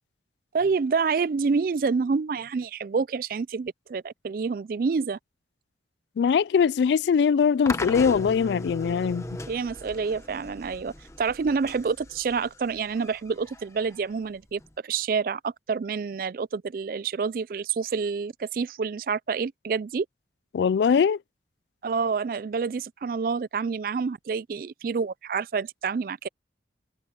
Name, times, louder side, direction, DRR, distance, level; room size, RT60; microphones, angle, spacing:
voice 1, 0.5-5.2 9.5-20.1 21.8-26.3, right 5 dB, 50° right, 0.3 m, -28 dB
voice 2, 6.2-9.4 20.5-21.2, left 6 dB, 75° left, 0.3 m, -22 dB
sound 1, 7.7-14.7, left 2 dB, 15° left, 0.9 m, -38 dB
head